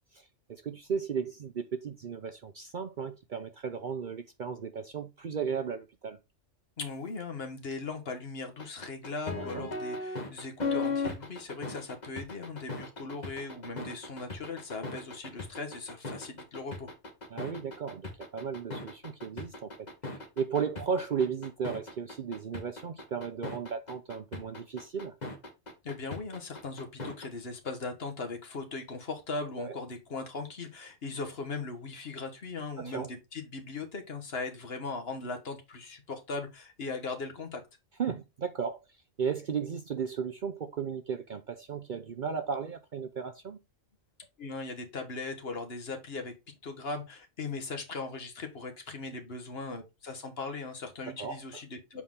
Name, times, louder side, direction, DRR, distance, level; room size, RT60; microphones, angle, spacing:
voice 1, 0.1-6.2 9.3-9.7 17.3-19.9 20.4-25.1 29.6-29.8 32.8-33.1 38.0-38.8 39.2-43.6 51.2-51.4, right 6 dB, 50° right, 0.6 m, -35 dB
voice 2, 6.8-16.9 25.8-37.6 44.4-46.3 46.6-52.0, left 3 dB, 55° left, 1.4 m, -39 dB
sound 1, 8.6-27.3, left 3 dB, 35° left, 1.5 m, -37 dB
7.3 x 4.2 x 3.7 m
omnidirectional pair, 1.3 m